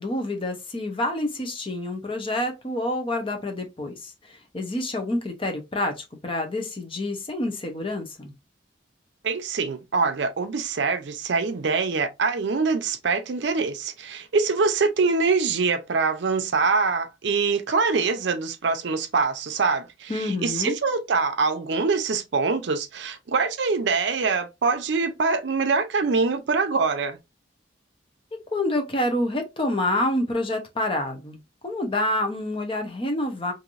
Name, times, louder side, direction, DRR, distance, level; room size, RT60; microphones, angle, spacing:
voice 1, 0.0-4.1 4.5-8.3 20.1-20.8 28.5-33.5, left 1 dB, 30° left, 0.7 m, -27 dB
voice 2, 9.2-27.2, right 4 dB, 70° right, 0.5 m, -24 dB
3.2 x 2.7 x 2.5 m
head